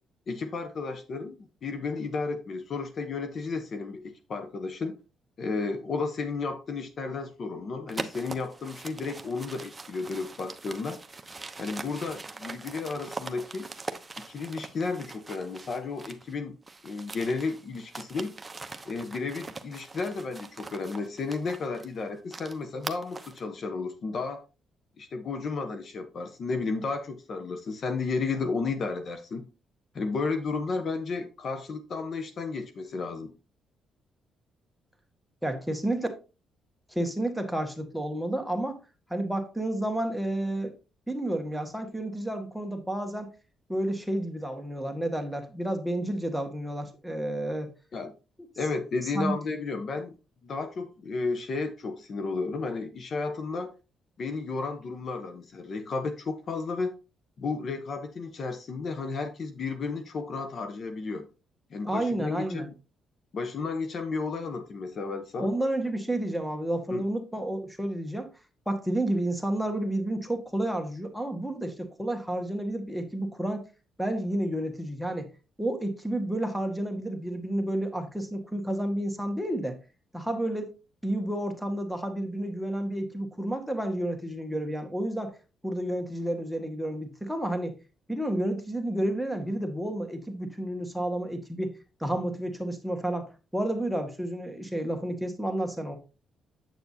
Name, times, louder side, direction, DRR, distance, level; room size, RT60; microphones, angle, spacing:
voice 1, 0.3-1.4 1.6-5.0 5.4-11.0 11.6-13.7 14.3-16.6 16.8-18.4 18.8-24.4 25.0-29.4 29.9-33.3 47.9-48.1 48.6-50.2 50.4-53.7 54.2-56.9 57.4-61.3 61.7-62.7 63.3-65.5 66.9-67.0, left 4 dB, 50° left, 1.0 m, -33 dB
sound 1, 7.9-16.3 16.6-23.4, right 3 dB, 20° right, 0.8 m, -42 dB
voice 2, 35.4-36.1 36.9-38.8 39.1-40.7 41.1-43.3 43.7-47.7 49.0-49.3 61.8-62.7 65.4-68.3 68.6-73.6 74.0-75.3 75.6-79.8 80.1-80.7 81.0-85.3 85.6-87.8 88.1-91.7 92.0-96.0, right 1 dB, ahead, 1.6 m, -30 dB
7.9 x 6.8 x 2.8 m
cardioid pair, 90°, 0 cm